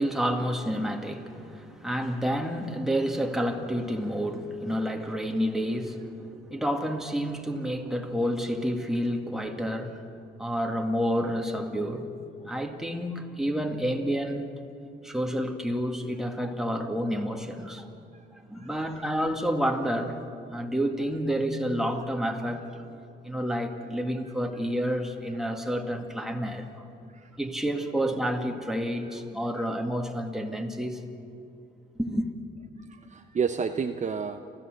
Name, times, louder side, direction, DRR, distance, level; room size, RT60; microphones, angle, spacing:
voice 1, 0.0-10.0 10.4-12.1 12.5-14.5 15.0-17.9 18.3-20.2 20.5-22.8 23.2-26.8 27.4-31.0 32.0-32.3, equal, ahead, 3 dB, 2.0 m, -29 dB
voice 2, 32.9-34.4, right 6 dB, 35° right, 7 dB, 0.8 m, -31 dB
30.0 x 14.0 x 7.8 m, 2.6 s
cardioid pair, 90°, 20 cm